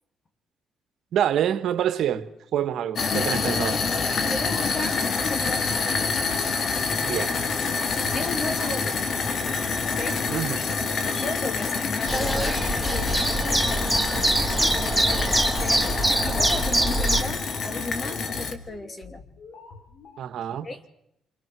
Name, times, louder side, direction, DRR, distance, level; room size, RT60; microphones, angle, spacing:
voice 1, 1.1-3.8 7.0-7.3 10.3-10.6 20.2-20.7, right 10 dB, 75° right, 1.5 m, -26 dB
sound 1, 3.0-18.5, left 4 dB, 55° left, 2.4 m, -27 dB
voice 2, 3.3-3.7 4.3-6.0 8.1-9.4 9.8-10.2 11.2-14.3 14.7-15.9 16.2-19.2 20.6-20.8, left 2 dB, 30° left, 2.8 m, -35 dB
sound 2, 4.3-20.2, left 4 dB, 80° left, 2.9 m, -44 dB
sound 3, 12.1-17.2, right 1 dB, ahead, 2.8 m, -24 dB
28.0 x 23.5 x 6.2 m
cardioid pair, 90°, 0 cm